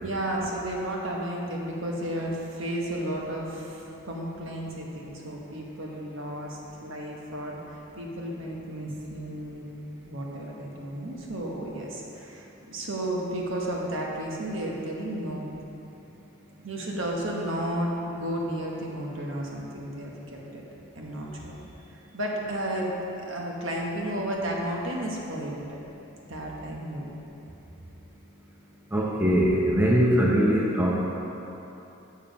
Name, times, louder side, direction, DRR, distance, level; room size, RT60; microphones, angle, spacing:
voice 1, 0.0-9.7 10.0-15.4 16.6-20.6 21.0-21.5 21.9-22.9 23.1-25.6 26.3-27.1, right 1 dB, 60° right, -2 dB, 1.2 m, -33 dB
voice 2, 28.9-31.1, equal, 10° right, -4 dB, 0.6 m, -22 dB
7.1 x 7.0 x 5.2 m, 3.0 s
head